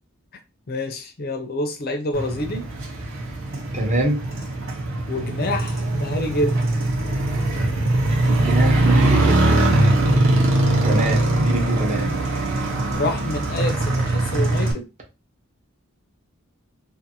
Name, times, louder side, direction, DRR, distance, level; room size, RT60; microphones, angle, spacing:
voice 1, 0.7-2.7 5.1-6.7 9.9-10.3 12.9-14.9, left 1 dB, 50° left, 0.5 m, -27 dB
Motorcycle, 2.1-14.7, right 2 dB, 65° right, 0.8 m, -21 dB
voice 2, 3.7-4.2 8.3-9.6 10.2-10.5 10.8-12.2, right 2 dB, 35° right, 0.8 m, -24 dB
2.6 x 2.5 x 2.7 m
head